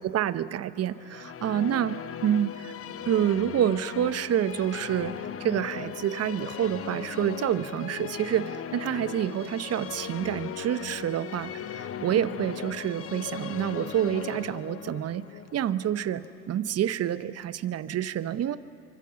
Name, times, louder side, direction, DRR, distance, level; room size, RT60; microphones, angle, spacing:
voice 1, 0.0-2.7 3.1-15.3 15.5-18.6, right 10 dB, 30° right, 14 dB, 1.0 m, -28 dB
sound 1, 0.9-17.0, left 9 dB, 30° left, 1.0 m, -38 dB
26.5 x 24.5 x 7.1 m, 2.7 s
hypercardioid pair, 85°, 46 cm